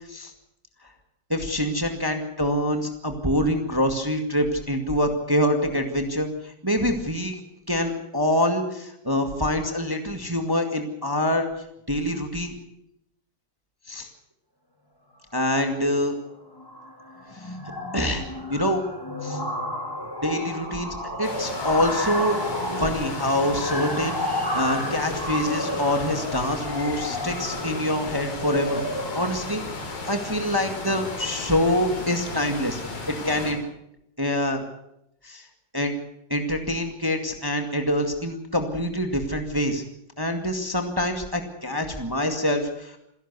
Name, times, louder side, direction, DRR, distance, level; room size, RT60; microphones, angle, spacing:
voice 1, 1.3-7.4 7.7-11.5 11.9-12.6 13.9-14.1 15.3-16.1 17.4-17.5 17.9-18.8 19.2-19.4 20.2-22.4 22.8-24.2 24.5-28.8 29.1-32.8 33.1-33.6 34.2-34.6 35.2-35.4 35.7-35.9 36.3-39.8 40.2-43.0, left 1 dB, 15° right, 5 dB, 0.9 m, -25 dB
sound 1, 15.7-15.8 16.0-16.3 16.6-31.5, left 1 dB, 10° left, 1.7 m, -32 dB
sound 2, 21.2-33.5, left 3 dB, 90° left, 5.8 m, -35 dB
27.5 x 11.5 x 8.2 m, 0.80 s
omnidirectional pair, 3.9 m